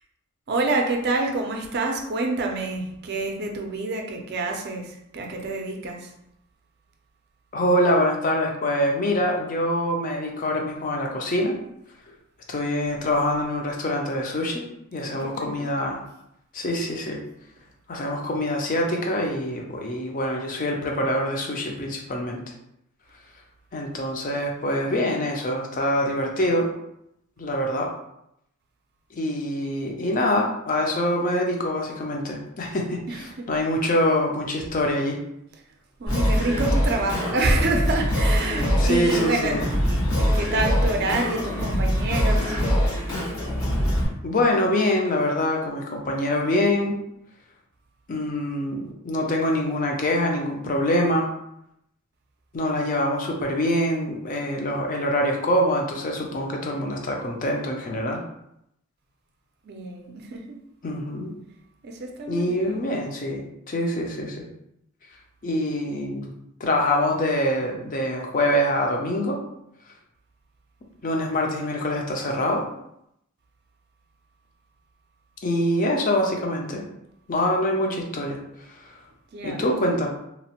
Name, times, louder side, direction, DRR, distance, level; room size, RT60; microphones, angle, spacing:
voice 1, 0.5-6.1 15.1-15.7 33.1-33.5 36.0-42.6 59.6-60.6 61.8-62.9 79.3-79.8, right 2 dB, 50° right, 2 dB, 0.4 m, -27 dB
voice 2, 7.5-11.6 12.5-14.6 14.9-16.0 16.5-17.2 17.9-22.4 23.7-26.7 27.4-27.9 29.1-35.2 38.8-39.6 44.2-47.0 48.1-51.3 52.5-58.2 60.8-61.3 62.3-64.5 65.4-66.3 66.6-69.4 71.0-72.7 75.4-76.8 77.3-78.4 78.6-78.9 79.4-80.1, left 1 dB, 40° left, 1 dB, 0.5 m, -25 dB
Singing, 36.1-44.0, equal, 70° left, 1.3 m, -23 dB
2.9 x 2.0 x 2.8 m, 0.78 s
head